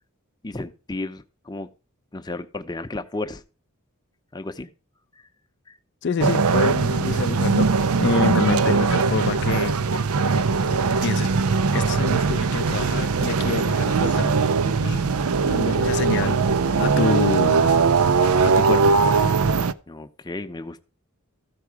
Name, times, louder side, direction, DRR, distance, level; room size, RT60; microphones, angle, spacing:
voice 1, 0.4-1.7 2.1-3.4 4.3-4.7 5.1-5.3 5.7-5.8 19.9-20.8, left 2 dB, 20° left, 0.7 m, -33 dB
voice 2, 6.0-7.7 8.0-9.7 11.0-11.3 11.7-14.3 14.8-15.1 15.4-16.4 16.8-17.7 18.4-19.0, left 5 dB, 50° left, 0.4 m, -27 dB
sound 1, 6.2-19.7, right 4 dB, 75° right, 0.5 m, -20 dB
14.0 x 4.8 x 4.7 m
head